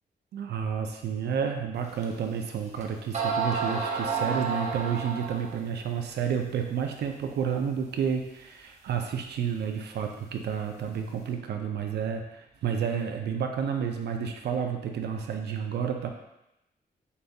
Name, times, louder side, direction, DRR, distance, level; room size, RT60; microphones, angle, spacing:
voice 1, 0.3-16.1, right 7 dB, 80° right, 4 dB, 0.4 m, -30 dB
sound 1, 2.0-2.1 2.8-2.9 3.1-5.6, right 5 dB, 40° right, 0.7 m, -30 dB
6.7 x 2.3 x 2.7 m, 0.89 s
wide cardioid pair, 120°, 17 cm